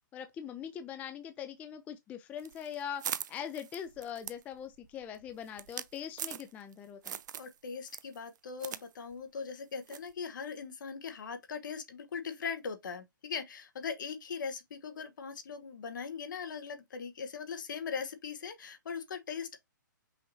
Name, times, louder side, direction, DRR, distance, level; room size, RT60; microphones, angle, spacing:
voice 1, 0.1-3.0 3.3-7.2, left 8 dB, 15° left, 0.4 m, -42 dB
sound 1, 2.4-6.7 7.0-7.5 7.9-8.8 9.1-9.2 9.9-10.1, right 9 dB, 65° right, 0.4 m, -41 dB
voice 2, 7.4-19.6, left 6 dB, 70° left, 1.1 m, -40 dB
5.6 x 2.6 x 3.0 m
hypercardioid pair, 140°, 11 cm